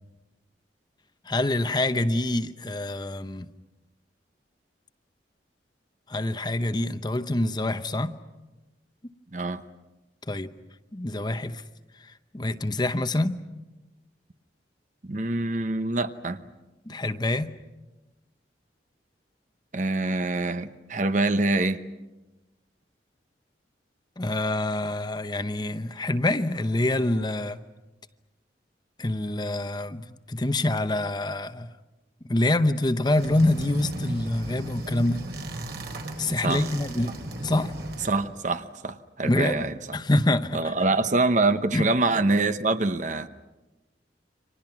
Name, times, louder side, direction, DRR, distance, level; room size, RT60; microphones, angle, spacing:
voice 1, 1.3-3.5 6.1-8.1 10.3-10.5 10.9-11.6 12.0-13.4 16.9-17.5 24.2-27.6 29.0-31.7 32.2-35.2 36.2-37.2 37.4-37.7 39.2-39.6 39.9-40.7 41.7-41.9, left 1 dB, 25° left, 0.8 m, -26 dB
voice 2, 9.3-9.6 15.0-16.4 19.7-21.8 36.4-36.7 38.0-39.7 40.5-43.3, right 2 dB, 45° right, 0.9 m, -25 dB
sound 1, 33.1-38.3, right 1 dB, 70° right, 4.3 m, -35 dB
30.0 x 25.5 x 6.0 m
head